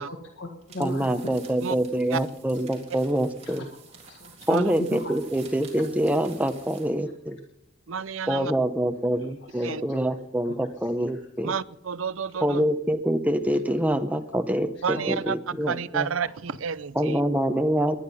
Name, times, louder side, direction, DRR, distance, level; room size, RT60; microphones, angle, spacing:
voice 1, 0.0-1.4 3.4-5.1 9.5-10.6 10.9-11.1 12.4-12.5 14.3-14.4 14.8-15.1 15.5-15.6, left 1 dB, 60° left, 4 dB, 1.7 m, -38 dB
sound 1, 0.6-7.0, right 6 dB, 30° right, 3.6 m, -50 dB
voice 2, 0.8-3.6 4.5-7.4 8.3-11.5 12.4-16.1 17.0-18.0, right 1 dB, 5° right, 7 dB, 0.8 m, -25 dB
voice 3, 7.9-8.5 9.6-9.8 11.4-12.6 14.8-15.4 15.7-17.2, right 6 dB, 80° right, 18 dB, 0.6 m, -30 dB
19.0 x 11.0 x 5.6 m, 0.84 s
head